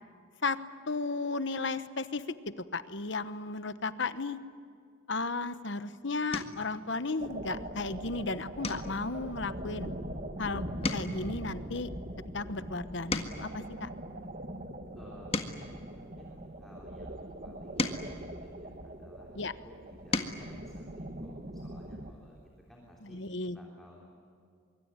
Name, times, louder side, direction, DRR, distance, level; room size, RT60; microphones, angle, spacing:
voice 1, 0.9-2.4 2.7-4.4 5.1-9.9 10.4-10.6 10.9-11.9 12.3-13.9 19.3-19.5 23.1-23.6, left 3 dB, 60° left, 13 dB, 1.1 m, -34 dB
sound 1, 6.3-6.7 7.2-7.6 7.9-8.1 8.6-10.4 10.7-13.6 14.2-16.7 17.4-19.2 19.8-20.5 21.9-22.0 22.3-22.5, left 2 dB, 30° left, 1.7 m, -38 dB
sound 2, 7.2-22.1, right 1 dB, 40° right, 1.8 m, -42 dB
voice 2, 14.9-23.2 23.5-24.1, equal, ahead, -2 dB, 3.4 m, -56 dB
24.5 x 24.0 x 9.7 m, 2.4 s
head